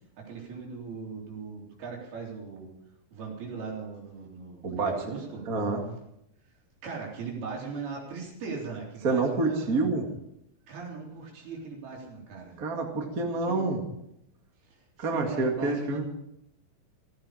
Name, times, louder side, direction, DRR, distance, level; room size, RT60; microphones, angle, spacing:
voice 1, 0.3-2.7 3.1-5.5 6.8-9.7 10.7-12.6 13.5-13.6 14.7-16.0, right 5 dB, 85° right, -2 dB, 5.6 m, -39 dB
voice 2, 4.6-4.9 5.5-5.8 9.0-10.1 12.6-13.8 15.0-16.0, right 3 dB, 30° right, 2 dB, 1.9 m, -27 dB
16.0 x 14.5 x 5.0 m, 0.80 s
omnidirectional pair, 4.3 m